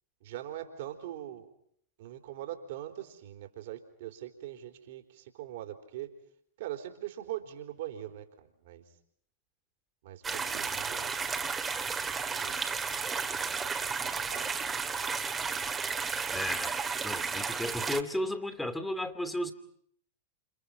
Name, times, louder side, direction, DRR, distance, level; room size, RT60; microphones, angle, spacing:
voice 1, 0.2-1.5 2.0-6.1 6.6-8.8 10.0-11.1 12.3-12.5 13.3-13.5 13.8-14.8, right 12 dB, 55° right, 6 dB, 4.0 m, -42 dB
sound 1, 10.2-18.0, right 5 dB, 15° right, 2.0 m, -33 dB
voice 2, 16.3-16.8 17.0-19.5, left 1 dB, 5° left, 9 dB, 2.7 m, -34 dB
30.0 x 28.5 x 5.7 m, 0.66 s
figure-of-eight pair, 90°, 0 cm